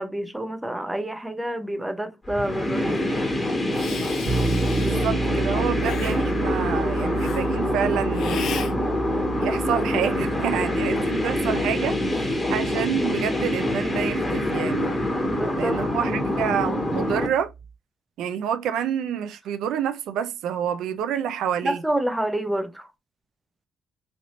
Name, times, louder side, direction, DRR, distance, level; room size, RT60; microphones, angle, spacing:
voice 1, 0.0-3.2 15.3-15.7 21.6-22.9, right 1 dB, 10° right, 0.6 m, -28 dB
sound 1, 2.3-17.3, left 1 dB, 20° left, 1.7 m, -25 dB
Hiss, 3.7-5.1 5.8-6.2 7.2-7.4 8.1-8.7, left 6 dB, 70° left, 0.8 m, -35 dB
sound 2, 4.3-17.7, right 4 dB, 35° right, 1.3 m, -33 dB
voice 2, 4.7-8.7 9.4-15.1 15.5-17.5 18.2-21.8, right 9 dB, 85° right, 0.4 m, -28 dB
3.2 x 2.7 x 3.9 m
cardioid pair, 90°, 0 cm